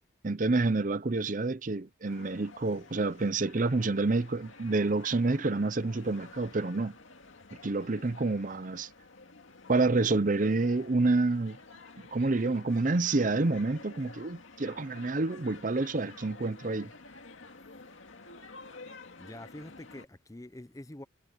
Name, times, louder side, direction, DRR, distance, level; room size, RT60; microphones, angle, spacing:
voice 1, 0.2-6.9 7.6-8.9 9.7-11.6 12.1-16.9, right 3 dB, 40° right, 0.7 m, -28 dB
sound 1, 2.1-20.1, left 3 dB, 85° left, 2.2 m, -51 dB
voice 2, 19.2-21.0, left 1 dB, 15° left, 0.6 m, -46 dB
head